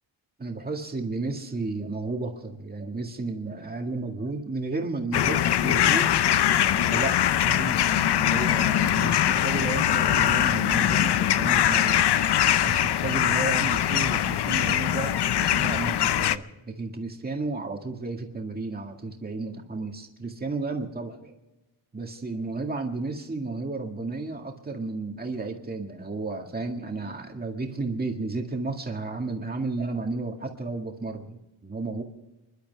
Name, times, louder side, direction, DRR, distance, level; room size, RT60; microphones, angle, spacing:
voice 1, 0.4-6.1 6.8-12.0 12.6-21.3 21.9-32.0, right 3 dB, 20° right, 2 dB, 2.0 m, -33 dB
sound 1, 5.1-16.4, left 11 dB, 55° left, 0.6 m, -22 dB
30.0 x 12.0 x 3.5 m, 1.0 s
wide cardioid pair, 180°, 49 cm